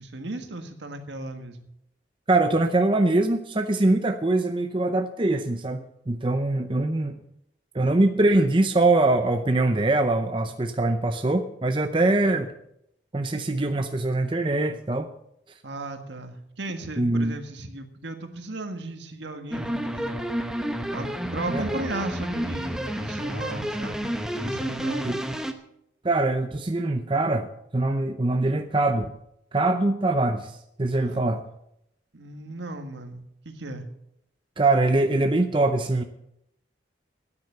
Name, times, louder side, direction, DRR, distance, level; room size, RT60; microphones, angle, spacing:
voice 1, 0.0-1.7 15.6-20.1 20.9-24.1 24.3-25.2 31.0-31.2 32.1-33.8, right 2 dB, 70° right, 6 dB, 1.6 m, -35 dB
voice 2, 2.3-7.2 7.7-12.5 13.1-15.1 17.0-17.3 21.5-21.8 25.0-25.2 26.0-29.1 29.5-31.4 34.6-36.0, right 2 dB, 25° right, 6 dB, 0.6 m, -23 dB
sound 1, 19.5-25.5, equal, 5° right, 0.8 m, -30 dB
13.0 x 9.7 x 6.7 m, 0.78 s
head